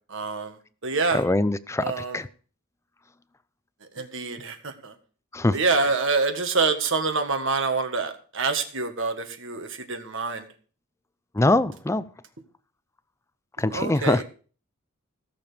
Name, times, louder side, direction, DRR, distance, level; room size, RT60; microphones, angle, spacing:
voice 1, 0.1-0.6 0.8-1.2 1.8-2.2 4.0-4.9 5.5-10.5 13.7-14.2, right 4 dB, 60° right, 1.7 m, -26 dB
voice 2, 1.1-2.3 5.3-5.6 11.3-12.0 13.6-14.2, left 2 dB, 15° left, 0.5 m, -23 dB
16.5 x 7.0 x 5.1 m
head